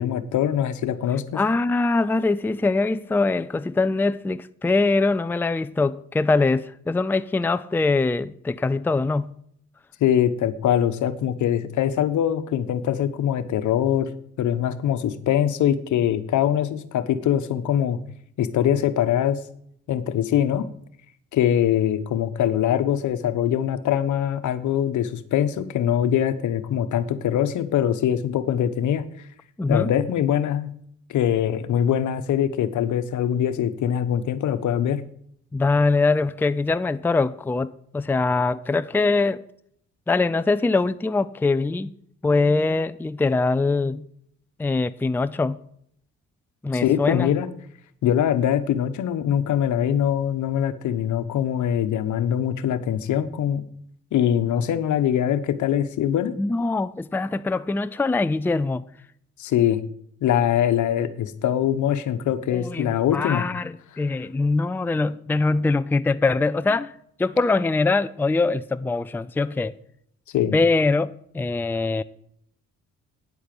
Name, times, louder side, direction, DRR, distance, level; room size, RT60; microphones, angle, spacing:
voice 1, 0.0-1.4 10.0-14.1 14.4-18.0 18.4-19.4 19.9-20.7 21.3-29.1 29.7-30.7 31.1-35.0 46.7-47.5 48.0-53.6 54.1-56.3 59.4-59.8 60.2-63.4 70.3-70.6, left 10 dB, 75° left, 1.1 m, -23 dB
voice 2, 1.3-9.3 29.6-29.9 35.5-39.4 40.1-41.9 42.2-44.1 44.6-45.6 46.6-47.3 56.4-58.8 62.5-66.9 67.2-69.7 70.5-72.0, left 3 dB, 5° left, 0.4 m, -23 dB
9.7 x 8.4 x 7.6 m
cardioid pair, 90°, 30 cm